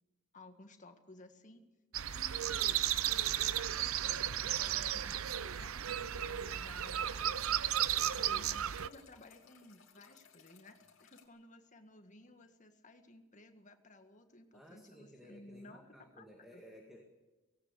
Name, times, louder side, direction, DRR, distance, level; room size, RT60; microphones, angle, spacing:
voice 1, 0.3-1.6 2.0-7.6 8.1-16.6, left 2 dB, 35° left, 6 dB, 1.8 m, -57 dB
sound 1, 1.9-8.9, right 11 dB, 80° right, 0.7 m, -34 dB
sound 2, 6.2-11.3, left 6 dB, 65° left, 2.8 m, -62 dB
voice 2, 7.9-8.5 14.5-17.0, equal, ahead, 1 dB, 2.1 m, -57 dB
18.0 x 17.5 x 8.2 m, 1.2 s
head